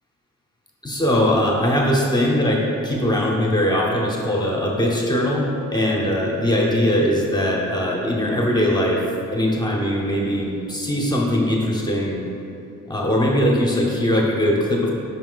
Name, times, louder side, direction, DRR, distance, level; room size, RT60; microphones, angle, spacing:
voice 1, 0.8-9.0 9.3-12.3 12.9-14.9, equal, 15° left, -2 dB, 0.9 m, -21 dB
5.9 x 4.3 x 3.9 m, 2.7 s
cardioid pair, 90°, 30 cm